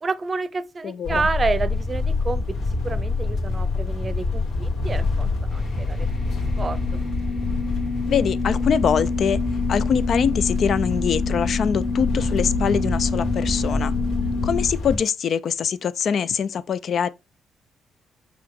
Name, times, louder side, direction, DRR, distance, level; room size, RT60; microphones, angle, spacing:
voice 1, 0.0-6.1 6.6-7.0, right 4 dB, 30° right, 0.6 m, -29 dB
voice 2, 0.8-1.3 8.1-9.4 9.7-13.9 14.4-17.1, left 7 dB, 60° left, 0.5 m, -23 dB
sound 1, 1.0-15.0, left 3 dB, 75° left, 2.6 m, -26 dB
sound 2, 5.5-14.7, left 3 dB, 35° left, 1.4 m, -28 dB
5.6 x 3.8 x 4.7 m
cardioid pair, 90°, 0 cm